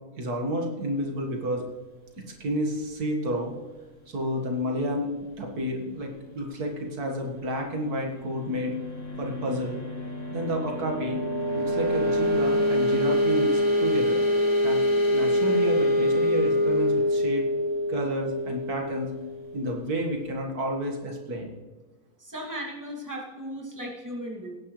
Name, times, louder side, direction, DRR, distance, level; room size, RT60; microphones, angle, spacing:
voice 1, 0.2-1.6 2.4-3.5 4.1-5.1 5.4-8.7 9.2-9.8 10.3-11.2 11.5-14.3 14.6-17.4 17.9-19.1 19.5-21.5, equal, 80° right, 1 dB, 2.3 m, -30 dB
sound 1, 7.3-19.9, left 1 dB, 55° left, 2.9 m, -26 dB
voice 2, 22.2-24.6, equal, 10° right, -2 dB, 2.4 m, -36 dB
17.5 x 10.5 x 3.2 m, 1.2 s
omnidirectional pair, 1.6 m